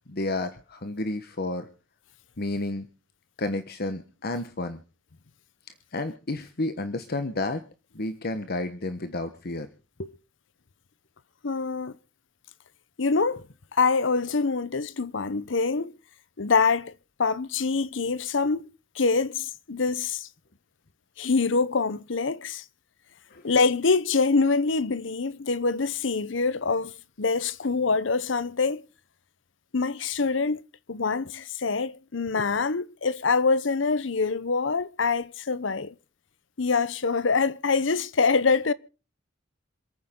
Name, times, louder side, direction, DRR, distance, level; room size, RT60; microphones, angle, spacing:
voice 1, 0.1-1.7 2.4-2.9 3.4-4.8 5.9-7.6 7.9-9.7 10.0-10.1 23.3-23.4 32.4-32.5, left 2 dB, 55° left, 1.2 m, -31 dB
voice 2, 11.4-11.9 13.0-13.4 13.7-15.9 16.4-16.9 17.2-18.6 18.9-20.3 21.2-22.6 23.4-28.8 29.7-30.6 30.9-35.9 36.6-38.7, left 4 dB, 70° left, 0.8 m, -25 dB
27.0 x 9.5 x 3.8 m
head